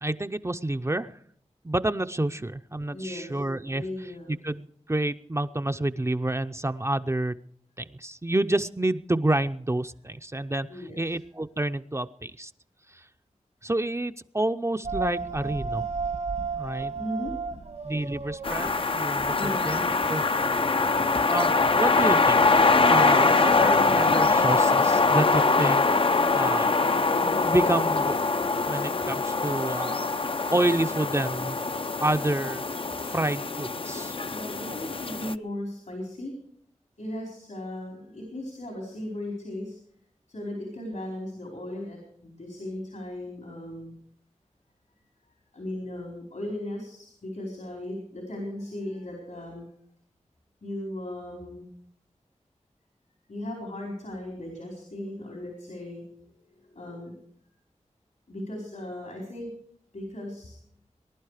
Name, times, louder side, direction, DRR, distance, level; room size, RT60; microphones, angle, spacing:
voice 1, 0.0-1.1 1.6-3.8 4.3-7.4 7.8-10.7 11.0-12.5 13.6-15.8 16.6-16.9 17.8-20.2 21.3-25.9 26.3-26.7 27.2-28.2 28.7-30.1 30.5-31.6 32.0-32.6 33.0-34.1, right 1 dB, 25° right, 9 dB, 0.6 m, -28 dB
voice 2, 2.9-3.4 3.7-4.3 10.7-11.0 16.4-17.4 19.3-20.1 33.9-36.3 37.0-39.8 40.3-43.9 45.5-49.7 50.6-51.8 53.3-56.0 56.7-57.2 58.3-59.5 59.9-60.6, left 1 dB, 85° left, 0 dB, 4.5 m, -37 dB
sound 1, 14.8-19.8, right 4 dB, 65° right, 1.5 m, -33 dB
sound 2, 18.4-35.3, left 3 dB, 45° left, 0.5 m, -23 dB
20.5 x 11.0 x 5.0 m, 0.65 s
wide cardioid pair, 55°, 12 cm